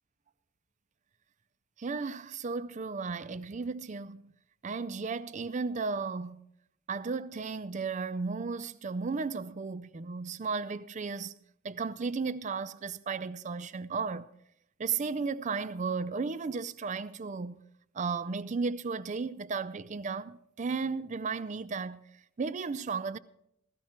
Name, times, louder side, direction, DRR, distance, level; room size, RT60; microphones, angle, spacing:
voice 1, 1.8-4.3 4.6-6.5 6.9-11.3 11.6-14.3 14.8-17.6 17.9-22.0 22.4-23.2, right 4 dB, 35° right, 0.4 m, -34 dB
16.0 x 13.5 x 4.3 m
head